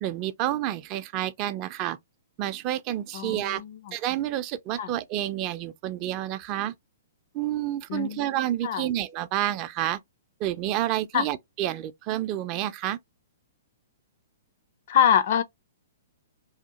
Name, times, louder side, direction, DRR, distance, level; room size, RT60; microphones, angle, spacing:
voice 1, 0.0-2.0 2.4-3.6 3.9-6.7 7.3-10.0 10.4-13.0, right 13 dB, 35° right, 0.4 m, -29 dB
voice 2, 3.1-3.9 4.8-4.9 7.9-8.4 8.6-8.9 11.1-11.3 14.9-15.4, left 9 dB, 55° left, 0.5 m, -24 dB
2.8 x 2.1 x 2.9 m
hypercardioid pair, 130°, 0 cm